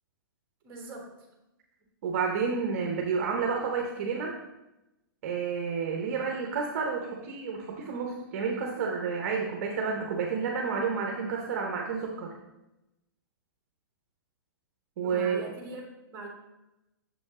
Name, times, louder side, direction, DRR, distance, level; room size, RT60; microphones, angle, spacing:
voice 1, 0.6-1.1 15.0-15.8 16.1-16.3, right 3 dB, 20° right, 1 dB, 1.4 m, -40 dB
voice 2, 2.0-4.3 5.2-12.3 15.0-15.5, right 5 dB, 40° right, 1 dB, 0.8 m, -30 dB
6.9 x 5.1 x 3.6 m, 0.95 s
hypercardioid pair, 165°, 12 cm